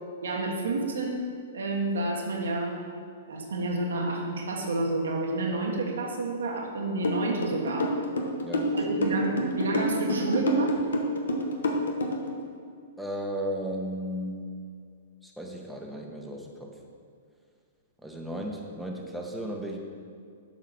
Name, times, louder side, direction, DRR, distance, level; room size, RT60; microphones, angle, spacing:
voice 1, 0.2-1.3 1.5-2.8 3.3-7.9 8.7-10.7, right 2 dB, 80° right, 0 dB, 1.4 m, -29 dB
sound 1, 7.0-12.3, left 1 dB, 80° left, 1.0 m, -27 dB
voice 2, 8.4-9.2 13.0-14.4 15.2-16.7 18.0-19.8, equal, ahead, -1 dB, 1.1 m, -35 dB
7.4 x 4.8 x 5.9 m, 2.2 s
hypercardioid pair, 120°, 0 cm